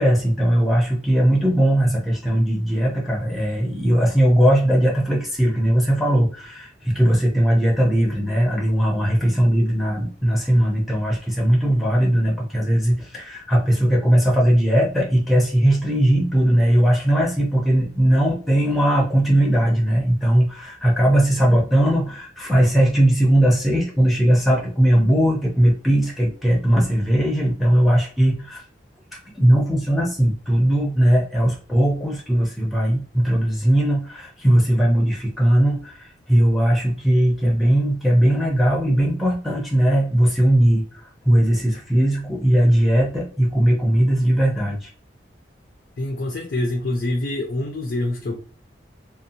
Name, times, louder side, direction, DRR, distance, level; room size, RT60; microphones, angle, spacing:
voice 1, 0.0-28.6 29.3-44.9, right 1 dB, ahead, -3 dB, 0.6 m, -19 dB
voice 2, 46.0-48.4, left 1 dB, 60° left, 1 dB, 0.4 m, -25 dB
2.7 x 2.2 x 2.6 m, 0.39 s
head